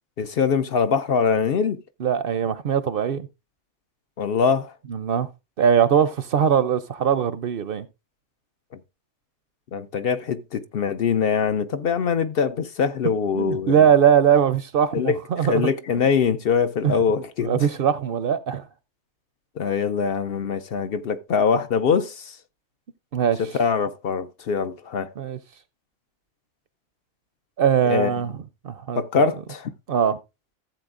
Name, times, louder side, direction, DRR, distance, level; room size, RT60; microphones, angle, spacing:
voice 1, 0.2-1.8 4.2-4.7 8.7-8.8 9.7-13.9 14.9-17.7 19.6-22.4 23.4-25.1 27.9-28.1 29.0-29.7, left 6 dB, 60° left, 0.8 m, -23 dB
voice 2, 2.0-3.3 4.9-5.3 5.6-7.8 13.4-15.6 16.8-16.9 17.4-18.6 23.1-23.4 25.2-25.4 27.6-28.3 28.6-29.3 29.9-30.2, right 8 dB, 60° right, 0.7 m, -21 dB
14.5 x 7.8 x 2.5 m
omnidirectional pair, 1.2 m